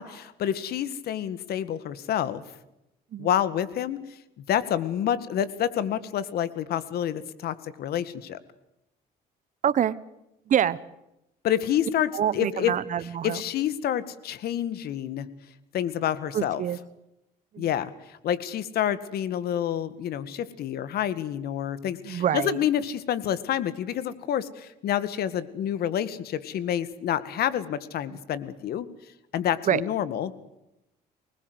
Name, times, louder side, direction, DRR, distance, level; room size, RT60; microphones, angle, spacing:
voice 1, 0.0-2.4 3.2-4.0 4.5-8.4 11.4-12.7 13.2-15.3 15.7-16.6 17.6-28.9 29.3-30.3, left 10 dB, 65° left, 15 dB, 2.0 m, -28 dB
voice 2, 9.6-10.0 10.5-10.8 12.1-13.4 16.3-16.8 17.5-17.7 22.0-22.6 28.1-28.2 29.6-29.8, right 9 dB, 50° right, 17 dB, 1.2 m, -26 dB
25.0 x 20.5 x 8.1 m, 0.86 s
cardioid pair, 110°, 17 cm